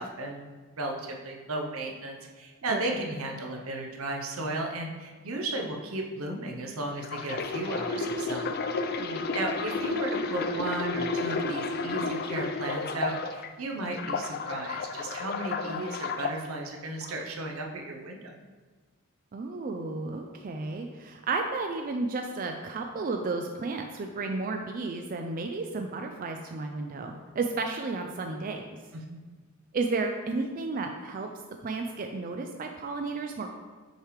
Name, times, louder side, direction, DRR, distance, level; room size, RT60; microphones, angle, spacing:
voice 1, 0.0-8.5 9.3-18.3 29.1-29.4, right 2 dB, 80° right, 2 dB, 0.8 m, -35 dB
sound 1, 7.0-13.5 13.9-16.4 17.0-17.2, left 3 dB, 45° left, 0.4 m, -32 dB
voice 2, 19.3-28.6 29.7-31.3 31.6-33.5, right 3 dB, 40° right, 4 dB, 0.4 m, -32 dB
6.4 x 3.3 x 4.8 m, 1.4 s
head